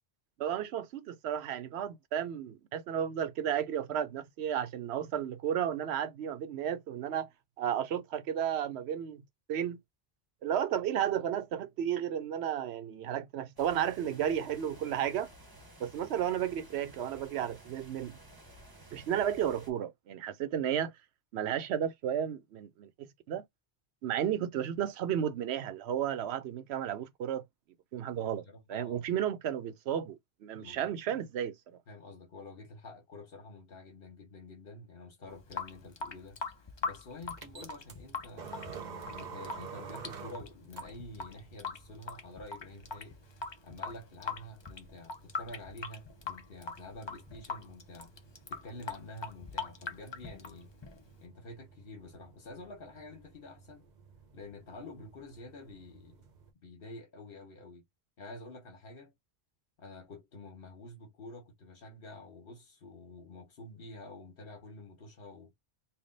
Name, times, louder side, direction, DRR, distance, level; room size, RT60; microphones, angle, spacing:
voice 1, 0.4-7.3 7.6-9.2 9.5-9.8 10.4-15.3 15.8-18.2 18.9-20.9 21.3-23.4 24.0-27.4 27.9-28.4 28.7-31.6, right 9 dB, 85° right, 0.9 m, -33 dB
sound 1, 13.6-19.7, right 1 dB, 20° right, 1.0 m, -54 dB
voice 2, 28.2-29.1 30.6-30.9 31.9-36.4 36.8-43.2 43.6-48.1 48.5-50.7 51.2-53.9 54.3-56.3 56.6-57.8 58.2-59.1 59.8-65.5, left 2 dB, 60° left, 1.4 m, -48 dB
Water tap faucet / Sink (filling or washing) / Drip, 35.3-51.2, left 4 dB, 35° left, 0.5 m, -42 dB
sound 2, 37.3-56.5, right 6 dB, 50° right, 0.8 m, -52 dB
3.4 x 2.2 x 3.8 m
omnidirectional pair, 1.1 m